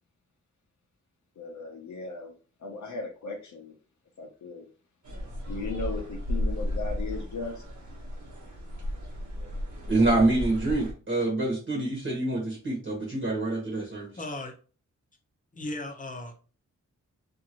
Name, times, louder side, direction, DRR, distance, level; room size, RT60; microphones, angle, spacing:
voice 1, 1.4-2.3 2.6-3.7 4.2-4.6 5.5-7.6, left 3 dB, 75° left, 0.7 m, -37 dB
sound 1, 5.0-10.9, left 1 dB, 70° right, 1.1 m, -34 dB
voice 2, 9.9-14.1, right 2 dB, 40° right, 1.2 m, -26 dB
voice 3, 14.2-14.5 15.5-16.4, left 2 dB, 25° left, 0.7 m, -36 dB
2.6 x 2.5 x 2.9 m
wide cardioid pair, 95°, 30 cm